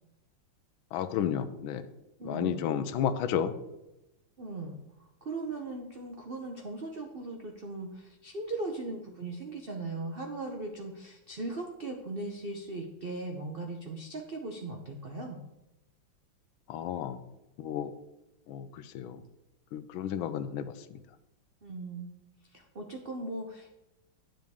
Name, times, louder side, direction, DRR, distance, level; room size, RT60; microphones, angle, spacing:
voice 1, 0.9-1.8 2.2-3.5 16.7-17.2 17.6-17.9 18.5-19.2 19.7-21.0, left 9 dB, 80° left, 11 dB, 1.4 m, -32 dB
voice 2, 2.2-2.7 4.4-4.8 5.2-15.4 21.6-22.1 22.4-23.7, right 2 dB, 65° right, 2 dB, 0.5 m, -38 dB
10.0 x 7.4 x 3.6 m, 0.94 s
omnidirectional pair, 2.2 m